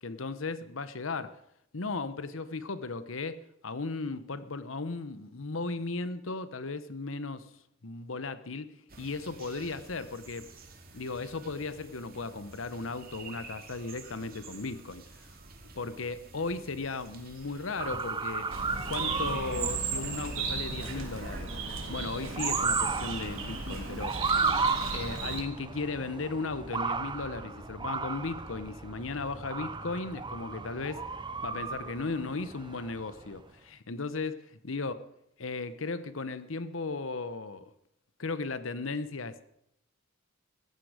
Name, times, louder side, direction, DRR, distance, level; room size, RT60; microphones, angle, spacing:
voice 1, 0.0-1.4 1.7-7.5 7.8-10.5 10.9-15.3 15.8-18.5 18.9-21.5 21.9-24.2 24.9-31.1 31.4-34.3 34.6-35.0 35.4-37.7 38.2-39.4, left 3 dB, 75° left, 1.0 m, -36 dB
sound 1, 8.9-21.4, right 3 dB, 50° right, 2.4 m, -50 dB
Motor vehicle (road) / Siren, 17.8-33.4, right 4 dB, 25° right, 0.6 m, -35 dB
Bird, 18.5-25.4, right 4 dB, 85° right, 3.3 m, -35 dB
16.0 x 14.5 x 5.0 m
head